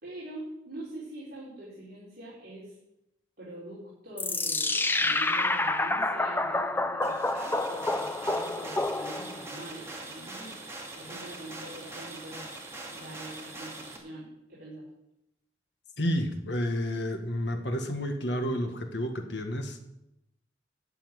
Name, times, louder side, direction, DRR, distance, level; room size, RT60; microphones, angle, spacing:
voice 1, 0.0-2.7 3.4-10.6 10.9-12.5 12.9-14.8, right 1 dB, 55° right, -8 dB, 4.6 m, -44 dB
sound 1, 4.2-9.5, left 2 dB, 10° left, 0.6 m, -28 dB
sound 2, 7.0-14.0, right 2 dB, 15° right, 2.3 m, -42 dB
voice 2, 16.0-19.8, equal, 65° left, 5 dB, 1.7 m, -30 dB
13.5 x 5.7 x 9.4 m, 0.88 s
head